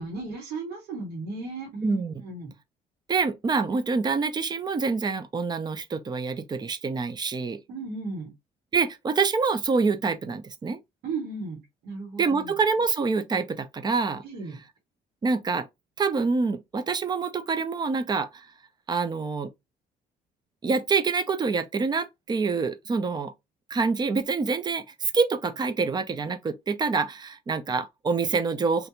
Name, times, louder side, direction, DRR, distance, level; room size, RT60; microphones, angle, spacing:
voice 1, 0.0-2.5 7.7-8.3 11.0-12.5 14.2-14.6, right 3 dB, 75° right, 1.6 m, -35 dB
voice 2, 1.8-2.1 3.1-7.6 8.7-10.8 12.2-14.2 15.2-15.7 16.0-18.5 18.9-19.5 20.6-23.3 23.7-28.9, right 4 dB, 25° right, 0.5 m, -26 dB
3.3 x 2.5 x 2.8 m
cardioid pair, 110°, 17 cm